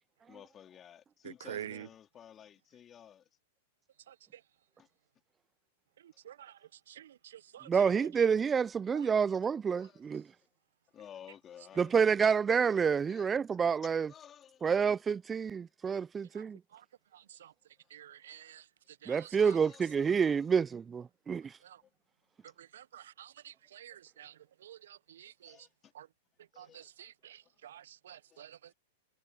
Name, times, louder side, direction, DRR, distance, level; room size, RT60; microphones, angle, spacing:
voice 1, 0.3-3.3 4.8-4.9 9.7-10.0 10.9-12.1 12.4-12.5 13.1-13.3 13.8-15.0 17.8-18.0 19.4-20.5 21.8-21.9 22.4-22.5 25.4-25.9 26.5-26.9 28.3-28.5, left 9 dB, 25° left, 4.0 m, -54 dB
voice 2, 1.2-1.9 4.1-4.4 6.0-6.6 6.9-7.9 8.9-9.1 16.3-16.4 16.7-16.8 17.1-17.5 17.9-18.6 19.0-19.6 21.6-21.8 22.6-25.6 25.9-26.1 26.6-28.7, right 11 dB, 70° right, 0.9 m, -49 dB
voice 3, 7.7-10.2 11.8-14.1 14.6-16.6 19.1-21.5, right 6 dB, 20° right, 0.4 m, -28 dB
hypercardioid pair, 105°, 0 cm